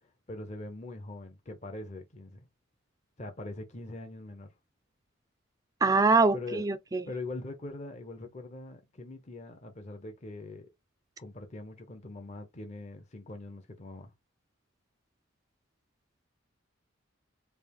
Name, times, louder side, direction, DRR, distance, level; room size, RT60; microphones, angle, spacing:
voice 1, 0.0-2.4 3.2-4.5 6.3-6.7 7.1-10.7 11.2-14.1, left 2 dB, 35° left, 0.6 m, -42 dB
voice 2, 5.8-7.1, right 3 dB, 15° right, 0.3 m, -24 dB
3.3 x 2.4 x 3.5 m
head